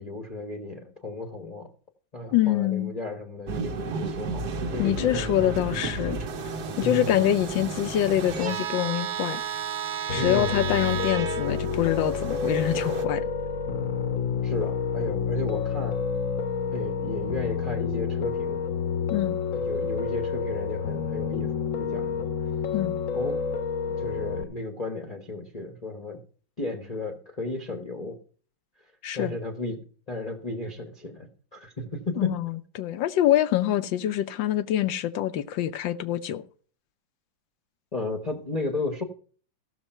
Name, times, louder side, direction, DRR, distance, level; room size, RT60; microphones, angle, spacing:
voice 1, 0.0-1.7 2.1-5.5 6.8-7.3 10.1-10.6 14.4-16.0 16.7-18.6 19.5-22.3 23.1-23.4 23.9-26.2 26.6-28.2 29.1-29.8 30.1-32.4 37.9-39.0, left 2 dB, 25° left, 0.9 m, -34 dB
voice 2, 2.3-2.9 4.8-6.2 6.8-9.4 10.1-13.3 19.1-19.4 22.7-23.0 29.0-29.3 32.2-36.4, left 12 dB, 80° left, 1.4 m, -25 dB
sound 1, 3.5-13.0, right 5 dB, 60° right, 1.4 m, -32 dB
Piano, 10.1-24.4, left 6 dB, 55° left, 1.1 m, -29 dB
15.5 x 6.7 x 4.4 m
omnidirectional pair, 2.0 m